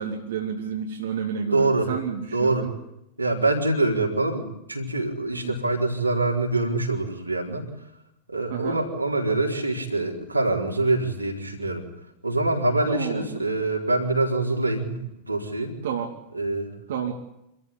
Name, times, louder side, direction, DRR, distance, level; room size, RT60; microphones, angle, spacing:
voice 1, 0.0-2.7 5.4-5.6 8.5-8.8 12.9-13.4 15.8-16.1 16.9-17.1, right 7 dB, 60° right, 3 dB, 2.6 m, -30 dB
voice 2, 1.5-1.9 2.3-2.7 3.2-7.7 8.3-11.8 12.2-15.7 16.3-16.7, right 2 dB, 85° right, 0 dB, 4.4 m, -25 dB
26.5 x 14.5 x 9.9 m, 0.82 s
figure-of-eight pair, 90°, 0 cm